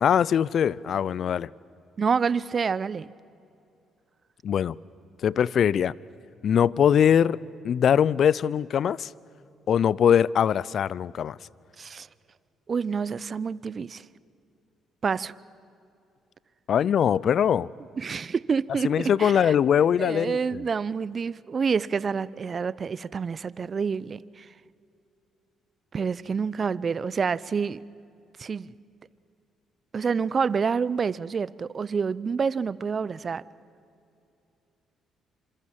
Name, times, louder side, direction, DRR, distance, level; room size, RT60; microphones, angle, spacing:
voice 1, 0.0-1.5 4.4-4.7 5.2-5.9 6.4-7.4 7.6-9.1 9.7-11.4 16.7-17.7 18.8-20.6, left 8 dB, 60° left, 0.5 m, -22 dB
voice 2, 2.0-3.1 11.8-12.1 12.7-14.0 15.0-15.3 18.0-19.5 20.0-24.5 25.9-27.8 28.4-28.7 29.9-33.4, right 5 dB, 45° right, 0.7 m, -28 dB
27.0 x 26.5 x 7.5 m
hypercardioid pair, 55°, 0 cm